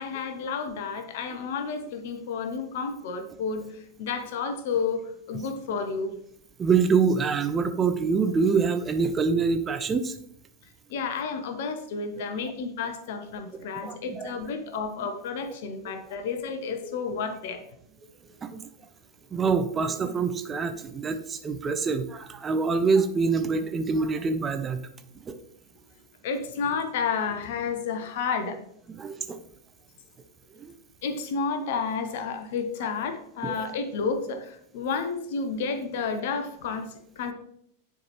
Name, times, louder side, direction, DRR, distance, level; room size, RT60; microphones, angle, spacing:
voice 1, 0.0-5.0 5.3-6.1 10.9-17.6 26.2-28.6 31.0-37.3, left 5 dB, 55° left, 8 dB, 0.9 m, -31 dB
voice 2, 6.6-10.1 13.5-14.3 16.8-17.0 18.3-18.6 19.3-24.9 25.3-25.4 28.9-29.4 30.5-30.7 33.4-33.6, right 5 dB, 20° right, 8 dB, 0.6 m, -26 dB
9.8 x 4.7 x 3.0 m, 0.71 s
figure-of-eight pair, 90°, 0 cm